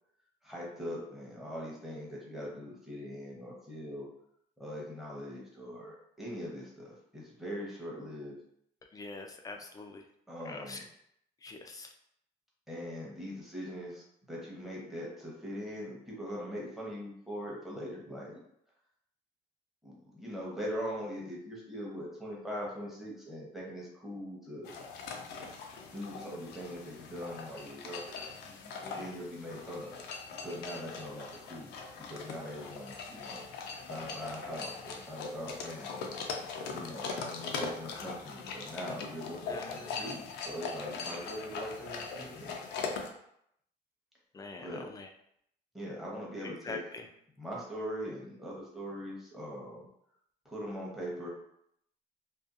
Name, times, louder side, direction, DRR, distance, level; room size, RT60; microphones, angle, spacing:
voice 1, 0.4-4.1 4.6-8.4 10.3-10.9 12.7-14.0 14.3-18.4 19.8-24.7 25.9-30.0 30.4-31.7 32.0-33.4 33.8-36.3 36.7-42.6 44.6-44.9 45.7-46.8 47.4-49.9 50.4-51.3, equal, ahead, -5 dB, 0.8 m, -41 dB
voice 2, 8.9-10.0 10.5-10.8 11.4-11.9 28.8-29.1 39.5-40.1 44.3-44.7 44.9-45.1 46.7-46.8, left 4 dB, 20° left, 4 dB, 0.3 m, -44 dB
sound 1, 24.6-43.1, left 4 dB, 85° left, 0.4 m, -41 dB
2.6 x 2.3 x 2.4 m, 0.73 s
cardioid pair, 110°, 17 cm